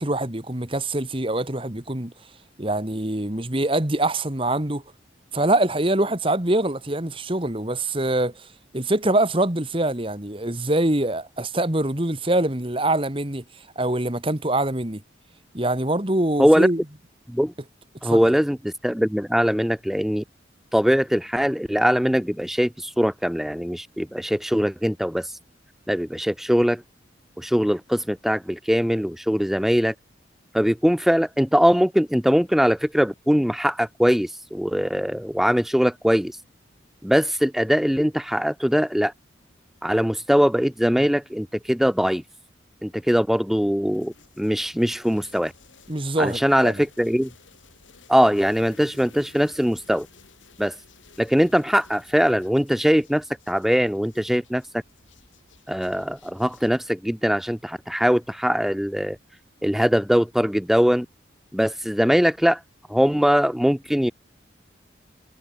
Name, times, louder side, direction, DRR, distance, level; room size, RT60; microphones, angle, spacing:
voice 1, 0.0-2.1 2.6-4.8 5.3-8.5 8.7-13.4 13.8-15.0 15.5-16.8 18.0-18.2 45.9-46.8, right 1 dB, 30° right, 1.9 m, -24 dB
voice 2, 18.0-20.2 20.7-25.3 25.9-26.8 27.4-29.9 30.5-36.4 37.0-39.1 39.8-42.2 42.8-45.5 46.2-47.3 48.1-50.1 50.6-50.8 51.2-54.6 55.7-59.2 59.6-61.1 61.5-62.6 62.9-64.1, equal, ahead, 0.5 m, -21 dB
sound 1, 43.8-56.7, left 4 dB, 90° left, 7.3 m, -54 dB
head